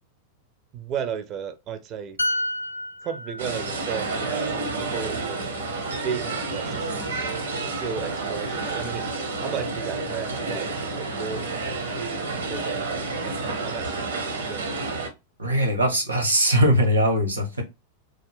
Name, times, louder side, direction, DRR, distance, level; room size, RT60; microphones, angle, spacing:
voice 1, 0.7-2.2 3.0-5.5 6.0-7.2 7.7-9.0 9.4-11.9 12.4-14.7, right 7 dB, 35° right, 0.4 m, -34 dB
sound 1, 2.2-5.8 6.1-6.3, left 1 dB, 85° left, 0.4 m, -32 dB
sound 2, 3.4-15.1, right 3 dB, 70° right, 0.8 m, -30 dB
voice 2, 15.4-17.6, equal, 85° right, 1.0 m, -21 dB
3.4 x 2.1 x 3.5 m
figure-of-eight pair, 90°, 0 cm